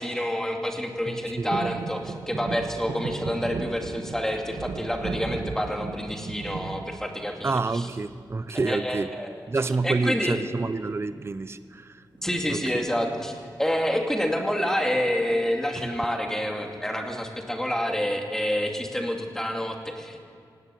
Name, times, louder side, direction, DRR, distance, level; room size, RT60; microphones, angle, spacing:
voice 1, 0.0-7.9 8.5-9.4 9.8-10.4 12.2-13.3 13.6-20.2, equal, 5° left, 2 dB, 2.5 m, -28 dB
sound 1, 1.5-7.7 8.1-8.7 10.0-10.4 10.7-10.8 11.0-11.3 12.2-13.1 13.6-13.7, right 4 dB, 70° right, 1.4 m, -35 dB
voice 2, 7.4-9.1 9.5-12.0 12.5-12.6, right 3 dB, 30° right, 13 dB, 0.6 m, -28 dB
18.0 x 16.5 x 9.1 m, 2.3 s
wide cardioid pair, 120°, 8 cm